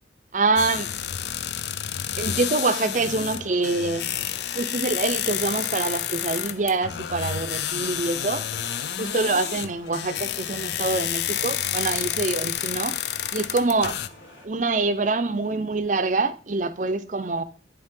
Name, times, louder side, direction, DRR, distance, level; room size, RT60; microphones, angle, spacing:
voice 1, 0.3-0.9 2.2-4.1 4.5-8.5 9.0-13.0 13.3-14.0 14.4-17.4, right 3 dB, 40° right, 0.6 m, -25 dB
sound 1, 0.6-14.1, left 10 dB, 65° left, 0.4 m, -29 dB
sound 2, 3.0-14.5, left 2 dB, 80° left, 2.9 m, -48 dB
10.5 x 4.2 x 3.7 m
head